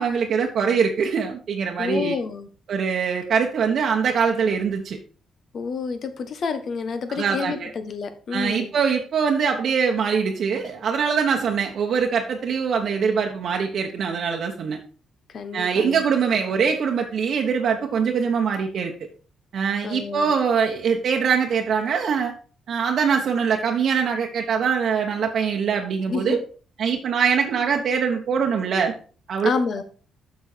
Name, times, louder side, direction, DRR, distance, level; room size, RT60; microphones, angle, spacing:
voice 1, 0.0-2.2 2.7-5.0 7.1-7.7 8.3-14.8 15.5-18.9 19.5-22.3 22.7-26.4 26.8-28.9 29.3-29.5, right 6 dB, 60° right, 1 dB, 1.1 m, -23 dB
voice 2, 1.8-2.5 5.5-8.7 15.3-16.0 19.8-20.3 26.1-26.4 29.4-29.8, left 5 dB, 55° left, 9 dB, 1.3 m, -29 dB
7.2 x 6.3 x 4.5 m, 0.39 s
cardioid pair, 90°, 0 cm